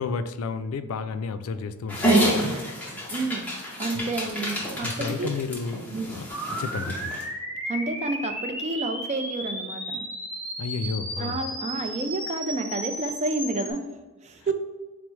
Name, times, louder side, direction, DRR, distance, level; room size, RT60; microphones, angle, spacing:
voice 1, 0.0-2.4 3.9-4.0 4.8-6.3 6.6-7.2 10.6-11.4, left 5 dB, 75° left, 11 dB, 0.3 m, -32 dB
Dog, 1.9-7.2, right 1 dB, 5° left, 0.7 m, -28 dB
voice 2, 3.1-3.5 3.8-5.3 5.9-6.2 7.7-10.0 11.2-13.8 14.2-14.5, right 2 dB, 30° right, 7 dB, 0.3 m, -30 dB
sound 1, 6.3-13.7, equal, 10° right, 1.0 m, -34 dB
4.3 x 2.0 x 4.5 m, 1.2 s
head